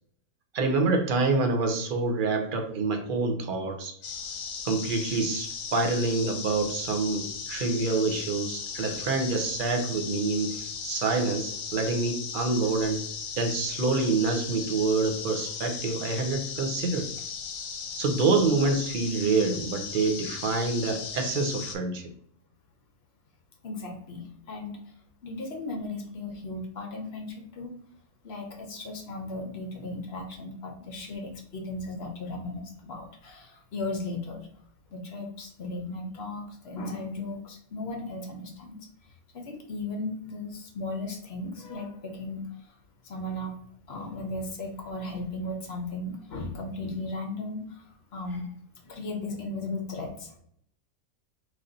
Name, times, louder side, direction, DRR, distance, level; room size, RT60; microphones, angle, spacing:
voice 1, 0.5-4.0 4.6-10.6 10.8-13.0 13.4-17.1 18.0-22.1, right 3 dB, 55° right, 4 dB, 0.6 m, -27 dB
sound 1, 4.0-21.8, left 6 dB, 70° left, 1.1 m, -37 dB
voice 2, 23.6-24.9 25.2-27.8 28.2-34.5 34.9-38.8 39.3-42.7 43.0-43.5 43.9-48.5 48.8-50.4, left 2 dB, 50° left, 3 dB, 0.9 m, -36 dB
3.3 x 2.6 x 3.8 m, 0.66 s
omnidirectional pair, 1.5 m